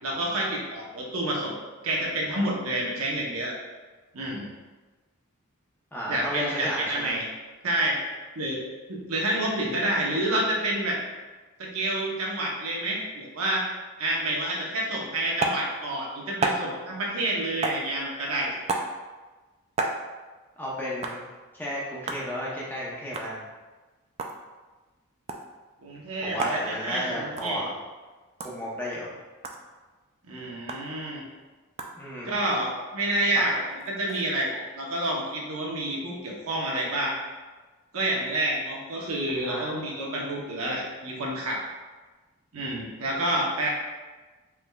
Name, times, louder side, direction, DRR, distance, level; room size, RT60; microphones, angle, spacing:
voice 1, 0.0-1.5 1.8-3.6 4.1-4.5 6.1-7.2 7.6-8.0 8.4-8.6 8.9-11.0 11.6-13.6 14.0-18.6 25.8-27.6 30.3-31.2 32.2-37.1 37.9-41.6 42.5-43.7, right 1 dB, 80° right, -3 dB, 0.9 m, -28 dB
voice 2, 5.9-7.2 20.6-21.2 21.5-23.4 26.2-27.7 28.4-29.1 32.0-32.4 33.3-33.4 39.4-39.6, equal, 10° left, -6 dB, 0.7 m, -33 dB
sound 1, 15.4-15.6 16.4-16.7 17.6-17.9 18.7-18.9 19.8-20.0 21.0-21.2 22.1-22.3 23.1-23.3 24.0-24.4 25.3-25.5 26.4-26.6 27.4-27.5 28.4-28.5 29.4-29.6 30.7-30.8 31.8-31.9 33.5-34.3, right 3 dB, 30° right, 0.3 m, -29 dB
4.7 x 3.4 x 2.3 m, 1.3 s
head